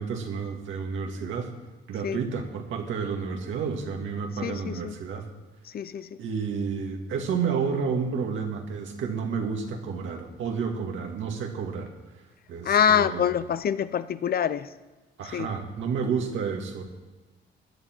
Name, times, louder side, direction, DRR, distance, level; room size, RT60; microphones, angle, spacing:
voice 1, 0.0-1.5 1.9-5.3 6.2-11.9 12.5-13.3 15.2-16.8, right 5 dB, 75° right, 2 dB, 2.1 m, -30 dB
voice 2, 4.4-5.0 5.7-6.1 12.6-14.7 15.3-15.5, left 8 dB, 50° left, 15 dB, 0.7 m, -25 dB
15.5 x 10.5 x 4.5 m, 1.2 s
cardioid pair, 90°, 20 cm